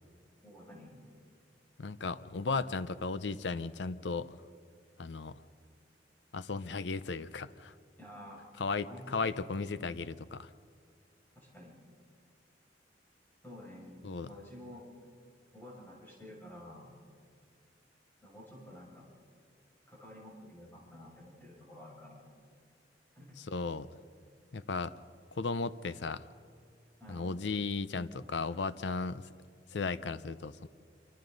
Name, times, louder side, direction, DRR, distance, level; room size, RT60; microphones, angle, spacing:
voice 1, 0.4-1.0 8.0-8.5 8.8-9.5 11.3-11.8 13.4-14.9 15.5-16.9 18.2-19.1 19.9-22.3 23.1-23.4 27.0-27.3, left 1 dB, 10° left, -5 dB, 6.3 m, -50 dB
voice 2, 1.8-4.3 5.0-5.4 6.3-7.7 8.6-10.5 14.0-14.3 23.5-23.9 24.5-24.9 25.4-26.2 27.1-29.2 29.7-30.7, left 4 dB, 70° left, 14 dB, 0.6 m, -35 dB
27.5 x 24.5 x 4.0 m, 2.2 s
head